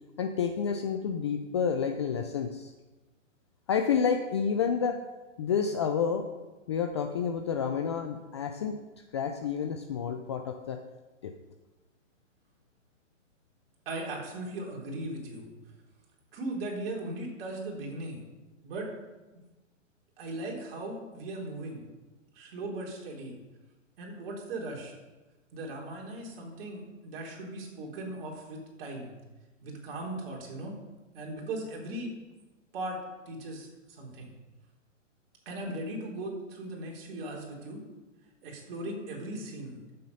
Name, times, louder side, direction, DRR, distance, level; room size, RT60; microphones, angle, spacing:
voice 1, 0.2-2.7 3.7-5.0 5.4-6.3 6.7-8.8 9.1-10.8 11.2-11.3, left 6 dB, 25° left, 6 dB, 0.4 m, -29 dB
voice 2, 13.9-15.5 16.3-18.2 18.6-18.9 20.2-21.8 22.3-23.3 24.0-24.9 25.5-29.1 29.6-30.8 31.1-32.1 32.7-33.0 33.3-33.7 34.0-34.3 35.5-37.8 38.4-39.8, right 1 dB, 45° right, -1 dB, 4.0 m, -38 dB
13.0 x 7.7 x 5.5 m, 1.1 s
hypercardioid pair, 140°, 38 cm